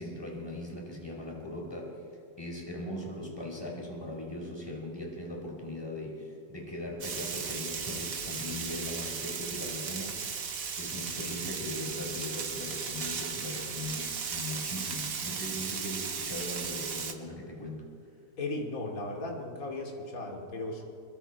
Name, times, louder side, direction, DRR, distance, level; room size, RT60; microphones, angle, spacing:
voice 1, 0.0-2.0 2.4-10.4 10.8-17.8, left 1 dB, 15° left, -1 dB, 4.4 m, -39 dB
Frying (food), 7.0-17.1, right 6 dB, 55° right, 1.7 m, -36 dB
voice 2, 18.4-20.9, left 2 dB, 50° left, 1 dB, 3.0 m, -36 dB
25.0 x 22.5 x 4.6 m, 2.4 s
omnidirectional pair, 1.9 m